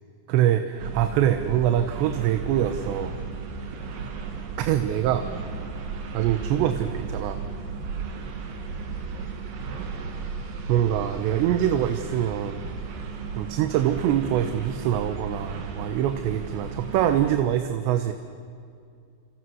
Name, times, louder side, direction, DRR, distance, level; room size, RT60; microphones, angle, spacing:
voice 1, 0.3-3.2 4.6-5.3 6.1-7.4 10.7-12.6 13.4-18.1, right 11 dB, 80° right, 8 dB, 3.1 m, -24 dB
sound 1, 0.8-17.4, right 5 dB, 60° right, 3.4 m, -35 dB
29.0 x 28.0 x 6.4 m, 2.3 s
omnidirectional pair, 5.1 m